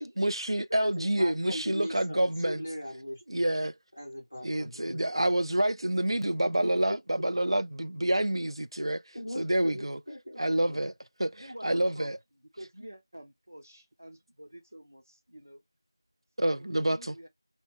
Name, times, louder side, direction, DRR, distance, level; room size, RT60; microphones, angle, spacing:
voice 1, 0.2-2.6 3.3-3.7 4.4-9.0 9.4-10.0 10.4-10.9 11.2-12.2 16.4-17.2, right 1 dB, 80° right, 0.3 m, -28 dB
voice 2, 0.7-3.4 4.0-5.3 6.4-6.7 9.1-10.4 10.7-10.8, equal, 10° left, 0.5 m, -39 dB
voice 3, 11.3-15.6 16.4-17.3, equal, 35° right, 0.6 m, -49 dB
2.7 x 2.1 x 3.1 m
figure-of-eight pair, 180°, 3 cm